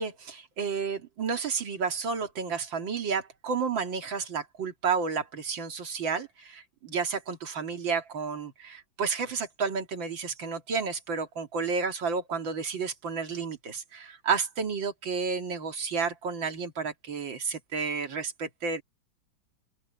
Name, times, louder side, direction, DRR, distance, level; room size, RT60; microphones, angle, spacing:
voice 1, 0.0-18.8, right 5 dB, 70° right, 2.9 m, -31 dB
open air
omnidirectional pair, 2.1 m